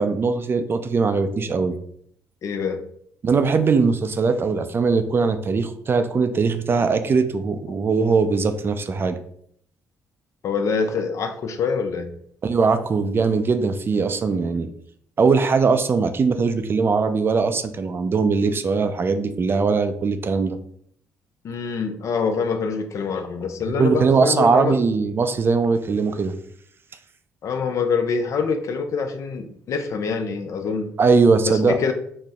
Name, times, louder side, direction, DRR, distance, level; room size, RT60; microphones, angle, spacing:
voice 1, 0.0-1.8 3.2-9.2 12.4-14.7 15.2-20.6 23.6-26.4 31.0-31.8, right 4 dB, 40° right, 9 dB, 0.4 m, -20 dB
voice 2, 2.4-2.8 10.4-12.1 21.4-24.8 27.4-30.9 31.5-31.9, left 5 dB, 60° left, 7 dB, 0.5 m, -25 dB
4.1 x 2.1 x 3.5 m, 0.66 s
cardioid pair, 70°, 6 cm